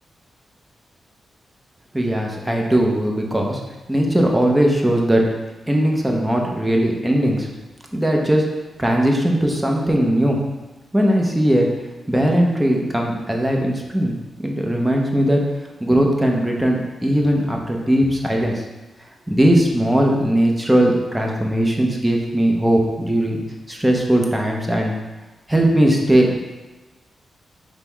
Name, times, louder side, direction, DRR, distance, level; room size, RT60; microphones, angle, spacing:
voice 1, 1.9-3.6 3.9-5.2 5.7-7.5 7.9-8.5 8.8-10.4 10.9-11.7 12.1-14.1 14.4-15.4 15.8-18.5 19.3-23.4 23.7-24.9 25.5-26.3, right 1 dB, 5° right, 0 dB, 0.6 m, -19 dB
5.3 x 2.0 x 4.4 m, 1.1 s
wide cardioid pair, 150°, 0 cm